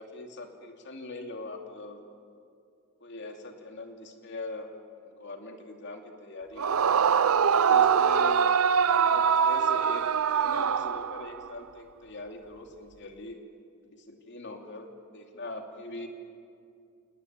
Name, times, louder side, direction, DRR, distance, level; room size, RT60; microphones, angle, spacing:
voice 1, 0.0-2.0 3.0-4.7 5.0-6.9 7.4-8.4 8.9-10.0 10.3-13.4 13.8-16.1, left 2 dB, 55° left, 3 dB, 2.7 m, -41 dB
Yell / Screaming, 6.6-11.5, right 7 dB, 75° right, 0.5 m, -23 dB
29.0 x 18.5 x 9.5 m, 2.4 s
head